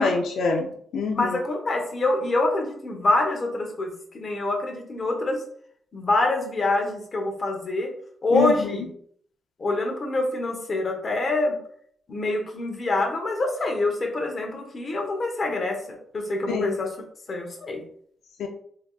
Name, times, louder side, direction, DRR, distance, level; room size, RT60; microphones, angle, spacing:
voice 1, 0.0-1.4 8.3-8.8 16.5-16.7 18.4-18.5, left 4 dB, 90° left, 2 dB, 0.5 m, -26 dB
voice 2, 1.1-5.4 5.9-7.9 8.2-8.8 9.6-11.6 12.1-16.9 17.3-17.8, left 2 dB, 35° left, 2 dB, 0.9 m, -25 dB
3.7 x 3.4 x 2.3 m, 0.62 s
cardioid pair, 125°, 0 cm